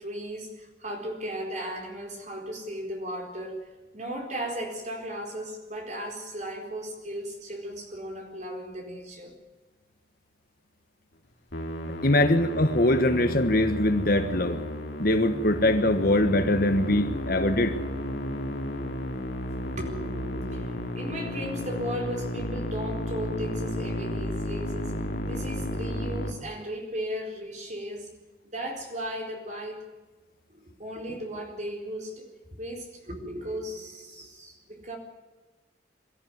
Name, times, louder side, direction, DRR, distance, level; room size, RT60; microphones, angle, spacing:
voice 1, 0.0-9.3 19.8-28.1 28.4-29.9 30.5-35.0, equal, 40° right, 2 dB, 4.4 m, -36 dB
Musical instrument, 11.5-26.3, left 1 dB, 65° left, 2.5 m, -33 dB
voice 2, 12.0-14.6 15.0-17.8, left 1 dB, 50° left, 8 dB, 1.4 m, -22 dB
22.5 x 14.0 x 9.5 m, 1.2 s
head